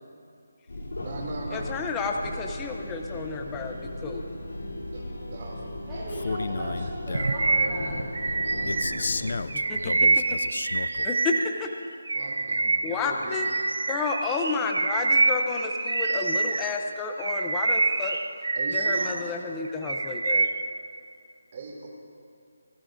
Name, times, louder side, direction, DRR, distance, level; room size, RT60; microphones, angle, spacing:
sound 1, 0.7-9.4, left 1 dB, 80° left, 3.2 m, -36 dB
voice 1, 1.0-2.4 4.9-7.1 12.1-13.5 18.5-19.4 21.5-21.9, right 3 dB, 35° right, -2 dB, 2.8 m, -40 dB
voice 2, 1.5-4.2 9.7-9.8 11.0-11.3 11.6-11.7 12.8-13.5 13.9-18.2 18.7-20.5, left 5 dB, 10° left, 3 dB, 0.6 m, -31 dB
voice 3, 5.9-8.0 8.4-8.6 9.0-10.5 19.0-19.3, right 1 dB, 10° right, -12 dB, 2.1 m, -39 dB
Male speech man speaking, 6.1-7.4 8.7-11.1, left 4 dB, 55° left, 0.4 m, -33 dB
Bird vocalization bird call bird song, 7.1-11.7 12.1-16.8 17.2-19.3 19.6-20.7, right 3 dB, 75° right, 0.6 m, -26 dB
21.0 x 14.0 x 2.6 m, 2.5 s
hypercardioid pair, 170°, 0 cm